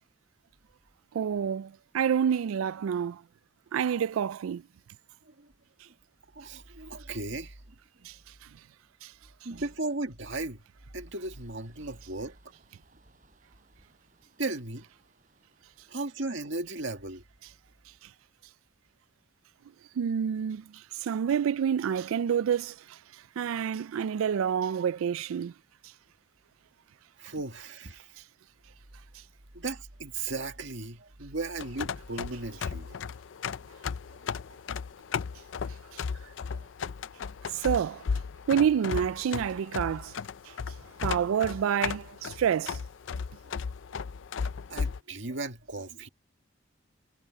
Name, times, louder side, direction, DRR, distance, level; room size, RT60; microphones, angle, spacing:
voice 1, 1.1-3.2 3.7-4.6 8.0-8.2 9.0-9.1 20.0-23.0 23.4-25.5 37.5-38.0 38.5-40.1 40.5-40.6 41.0-42.8, right 8 dB, 85° right, 0.3 m, -28 dB
voice 2, 6.4-7.6 8.0-8.1 9.4-10.6 10.9-12.4 14.4-14.9 15.9-17.2 27.2-28.1 29.5-32.9 34.5-34.6 36.1-36.7 44.7-46.1, right 2 dB, 65° right, 2.1 m, -36 dB
sound 1, 11.0-16.4, right 2 dB, 40° right, 7.7 m, -65 dB
sound 2, 31.6-45.0, left 6 dB, 65° left, 0.4 m, -35 dB
head